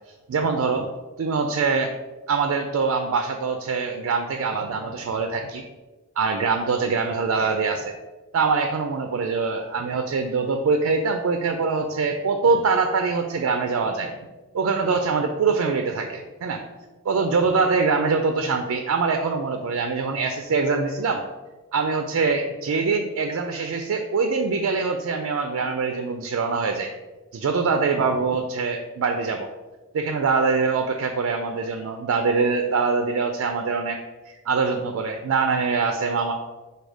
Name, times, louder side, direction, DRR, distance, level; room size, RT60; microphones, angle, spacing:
voice 1, 0.3-0.9 1.2-1.9 2.3-5.6 6.2-7.9 8.3-14.1 14.5-16.6 17.1-21.2 21.7-26.9 27.3-29.5 29.9-34.0 34.3-36.3, right 4 dB, 75° right, 5 dB, 0.4 m, -23 dB
4.7 x 2.3 x 4.8 m, 1.2 s
head